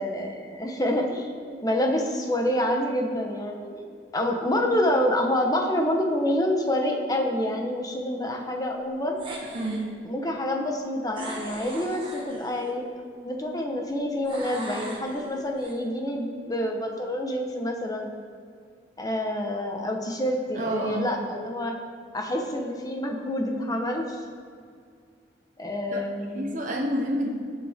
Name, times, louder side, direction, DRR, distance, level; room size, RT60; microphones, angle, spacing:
voice 1, 0.0-3.8 4.1-9.2 10.0-12.9 13.2-18.1 19.0-21.7 22.1-24.2 25.6-26.4, left 1 dB, 20° left, 2 dB, 1.2 m, -27 dB
sound 1, 9.2-9.9 11.1-12.8 14.3-15.7, right 1 dB, 30° right, 1.6 m, -39 dB
voice 2, 20.5-21.2 25.9-26.0 26.3-27.3, right 1 dB, 45° right, 0 dB, 1.1 m, -28 dB
17.0 x 6.8 x 3.7 m, 2.2 s
head